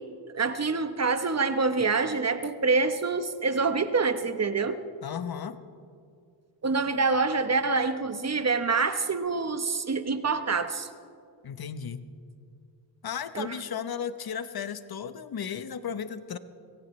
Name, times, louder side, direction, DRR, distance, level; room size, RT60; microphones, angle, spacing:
voice 1, 0.3-4.8 6.6-10.9 13.3-13.5, right 4 dB, 35° right, 10 dB, 1.1 m, -26 dB
voice 2, 5.0-5.6 11.4-12.0 13.0-16.4, left 7 dB, 50° left, 12 dB, 1.0 m, -35 dB
24.0 x 16.5 x 3.3 m, 2.3 s
cardioid pair, 65°, 47 cm